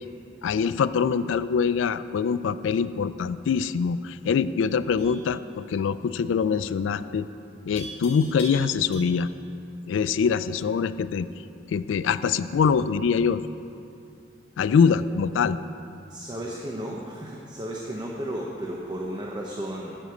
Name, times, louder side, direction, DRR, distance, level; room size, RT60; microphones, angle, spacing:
voice 1, 0.4-7.3 7.7-9.3 9.9-11.3 11.7-13.4 14.6-15.6, left 6 dB, 80° left, 14 dB, 0.3 m, -24 dB
Livestock farm animals working animals, 5.0-5.3 7.8-9.4, left 1 dB, 30° left, 1.9 m, -41 dB
voice 2, 16.1-19.9, right 1 dB, 25° right, -2 dB, 0.7 m, -34 dB
7.7 x 6.5 x 8.1 m, 2.6 s
head